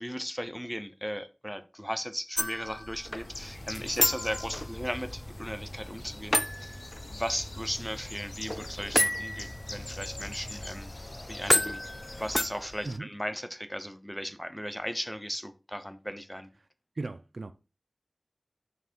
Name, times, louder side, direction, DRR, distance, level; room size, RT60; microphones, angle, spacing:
voice 1, 0.0-10.9 11.3-11.8 12.2-16.5, equal, 5° left, 0.8 m, -37 dB
sound 1, 2.4-13.0, left 1 dB, 20° left, 0.5 m, -33 dB
Bird, 3.0-12.7, left 1 dB, 50° left, 1.0 m, -44 dB
sound 2, 3.5-12.7, equal, 75° left, 1.8 m, -48 dB
voice 2, 17.0-17.5, right 3 dB, 75° right, 0.6 m, -36 dB
6.4 x 4.7 x 4.5 m
wide cardioid pair, 50°, 0 cm